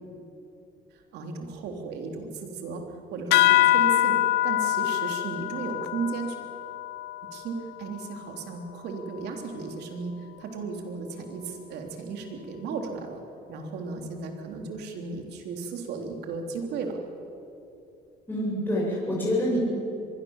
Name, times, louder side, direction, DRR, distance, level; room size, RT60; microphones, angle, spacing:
voice 1, 0.9-6.4 7.3-13.2 13.5-16.9, right 4 dB, 80° right, 3 dB, 3.5 m, -35 dB
sound 1, 3.3-8.3, left 15 dB, 80° left, 0.6 m, -25 dB
voice 2, 18.3-19.6, left 1 dB, 10° left, -5 dB, 7.5 m, -26 dB
24.0 x 22.0 x 7.4 m, 2.8 s
cardioid pair, 110°, 17 cm